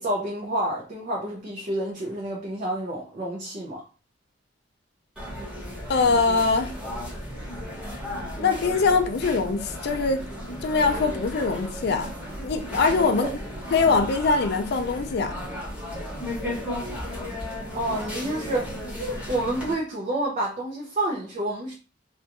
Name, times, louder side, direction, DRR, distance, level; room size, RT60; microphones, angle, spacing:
voice 1, 0.0-3.8 13.1-13.3 17.7-18.7 19.3-21.7, right 1 dB, 40° right, 0.5 m, -29 dB
sound 1, 5.2-19.7, equal, 5° right, 1.0 m, -34 dB
voice 2, 5.9-6.7 8.4-10.2 10.6-12.1 12.4-13.3 13.7-15.3, left 4 dB, 60° left, 0.4 m, -22 dB
2.5 x 2.2 x 2.8 m
head